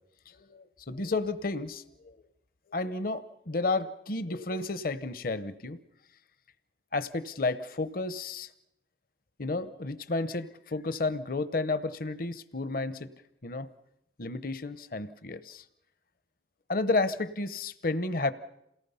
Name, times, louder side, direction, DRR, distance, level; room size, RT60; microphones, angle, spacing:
voice 1, 0.3-2.2 2.7-5.8 6.9-8.5 9.4-13.1 13.4-13.7 14.2-15.6 16.7-18.3, left 3 dB, 55° left, 13 dB, 0.9 m, -32 dB
28.0 x 18.0 x 5.6 m, 0.81 s
head